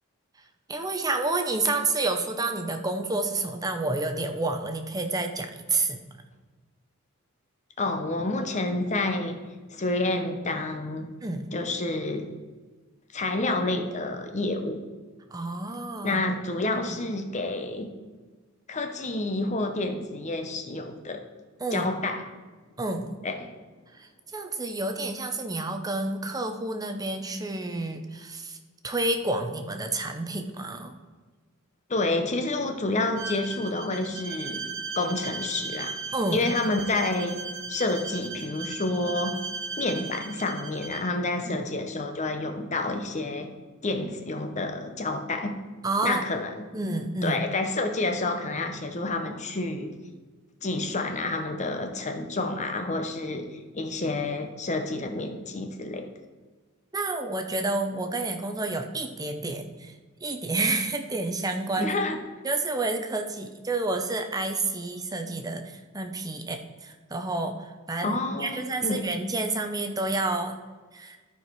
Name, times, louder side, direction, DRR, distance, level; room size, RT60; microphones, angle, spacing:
voice 1, 0.7-6.0 11.2-11.5 15.3-16.2 21.6-21.9 22.8-23.2 23.9-28.6 28.8-30.9 36.1-36.5 41.5-41.7 45.8-46.2 46.7-47.4 56.9-59.9 60.2-61.9 62.4-70.6 70.9-71.2, right 2 dB, 20° right, 5 dB, 0.7 m, -29 dB
voice 2, 7.8-9.4 9.7-11.1 11.5-12.3 13.1-14.8 16.0-17.9 18.7-21.2 21.7-22.2 23.2-23.5 31.9-34.6 34.9-36.0 36.3-37.4 37.7-39.4 39.8-43.5 43.8-45.6 46.0-46.6 47.2-49.9 50.6-56.1 61.8-62.2 68.0-69.0, left 2 dB, 35° left, 5 dB, 0.8 m, -29 dB
Bowed string instrument, 33.2-41.1, right 4 dB, 65° right, 1.2 m, -37 dB
12.5 x 4.8 x 4.6 m, 1.4 s
head